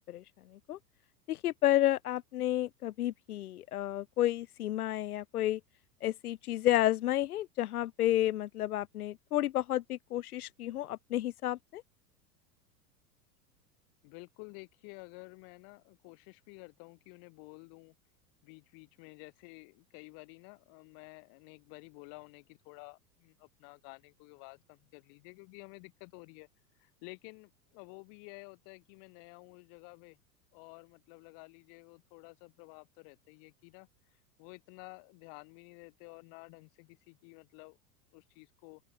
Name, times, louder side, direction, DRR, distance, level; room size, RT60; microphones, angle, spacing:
voice 1, 0.1-0.8 1.3-5.6 6.0-11.8, left 13 dB, 65° left, 0.7 m, -31 dB
voice 2, 14.0-17.9 18.4-26.5 26.8-30.2 30.5-37.8 38.1-38.8, left 40 dB or more, 45° left, 4.9 m, -52 dB
open air
figure-of-eight pair, 90°, 49 cm